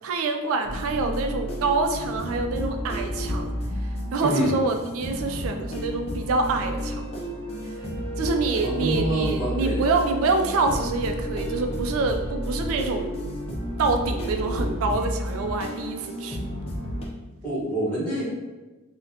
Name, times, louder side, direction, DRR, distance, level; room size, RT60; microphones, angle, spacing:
voice 1, 0.0-3.5 4.1-7.0 8.2-13.1 13.8-16.4, right 3 dB, 70° right, 5 dB, 0.3 m, -26 dB
sound 1, 0.6-17.0, equal, 30° left, 0.5 m, -31 dB
voice 2, 4.2-4.6 8.6-9.9 17.4-18.2, right 1 dB, 5° left, -9 dB, 1.2 m, -26 dB
3.7 x 2.1 x 2.7 m, 1.2 s
head